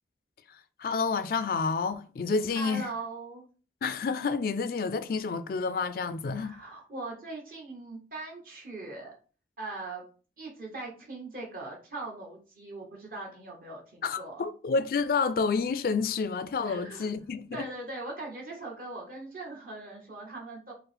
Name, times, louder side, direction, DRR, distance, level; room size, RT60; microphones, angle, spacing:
voice 1, 0.5-2.9 3.8-6.5 14.0-17.7, left 4 dB, 55° left, 0.3 m, -29 dB
voice 2, 2.5-3.4 6.3-9.1 9.6-10.0 10.4-14.5 16.6-17.1 17.5-20.7, right 2 dB, 50° right, 1.0 m, -40 dB
4.5 x 2.0 x 3.4 m
head